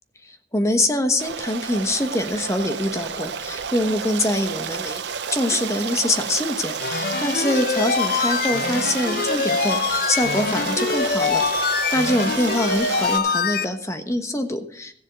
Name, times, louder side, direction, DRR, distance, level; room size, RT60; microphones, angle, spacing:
voice 1, 0.2-5.0 5.3-15.0, left 1 dB, 15° left, 7 dB, 1.1 m, -24 dB
Stream, 1.2-13.2, right 6 dB, 90° right, 0.8 m, -30 dB
sound 1, 6.8-13.6, left 5 dB, 55° left, 0.6 m, -24 dB
15.5 x 7.1 x 6.8 m, 0.63 s
head